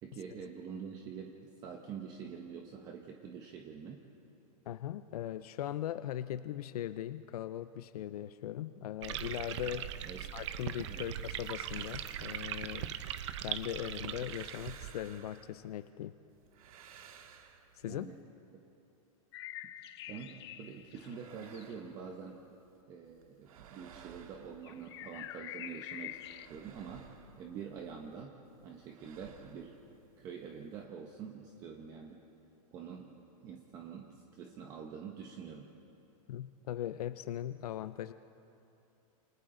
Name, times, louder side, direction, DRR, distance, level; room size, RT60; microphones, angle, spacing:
voice 1, 0.0-4.0 9.6-9.7 10.0-10.2 10.9-11.0 17.9-18.2 18.5-18.6 20.1-22.4 22.9-26.2 26.5-27.1 27.4-28.3 28.6-29.7 30.2-32.2 32.7-33.1 33.4-35.7, right 6 dB, 20° right, 2 dB, 0.9 m, -46 dB
voice 2, 4.7-9.9 10.2-13.0 13.4-16.2 17.7-18.1 36.3-38.1, left 12 dB, 85° left, 12 dB, 0.6 m, -39 dB
sound 1, 9.0-14.9, right 10 dB, 50° right, 0.9 m, -40 dB
sound 2, 11.4-13.5 13.9-15.9 16.3-18.2 20.6-22.8 23.1-25.3 25.7-28.2 28.5-30.9, right 7 dB, 70° right, 1.9 m, -58 dB
sound 3, 19.3-21.7 24.6-26.5, left 13 dB, 45° left, 0.8 m, -46 dB
28.5 x 28.5 x 3.9 m, 2.8 s
supercardioid pair, 180°, 19 cm